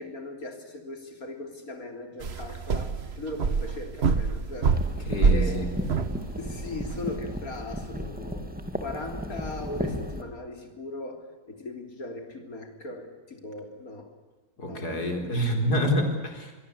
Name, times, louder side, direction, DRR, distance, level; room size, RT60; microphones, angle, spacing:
voice 1, 0.0-4.8 5.3-5.9 6.4-8.5 8.7-14.1 14.6-15.3 16.1-16.2, left 2 dB, 65° left, 5 dB, 3.9 m, -39 dB
sound 1, 2.2-7.2, right 4 dB, 45° right, 1.4 m, -27 dB
sound 2, 4.7-10.2, equal, 5° right, 2.8 m, -35 dB
voice 2, 5.1-5.7 14.6-16.6, equal, 85° left, 4 dB, 4.8 m, -27 dB
24.0 x 22.5 x 8.5 m, 1.3 s
omnidirectional pair, 1.6 m